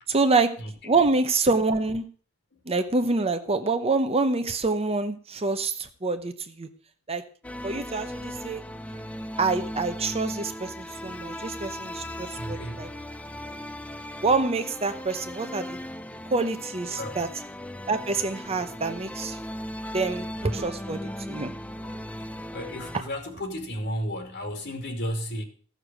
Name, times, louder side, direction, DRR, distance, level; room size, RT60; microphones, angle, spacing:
voice 1, 0.1-0.5 0.8-2.0 2.7-6.7 7.1-7.2 7.6-8.6 9.4-12.9 14.2-15.8 16.3-17.3 17.9-19.4 19.9-21.5, right 3 dB, 25° right, 0.8 m, -26 dB
sound 1, 7.4-23.0, equal, 5° left, 0.5 m, -37 dB
voice 2, 12.4-12.9 17.0-17.2 22.5-25.4, equal, 50° left, 2.4 m, -33 dB
14.5 x 6.7 x 6.1 m
head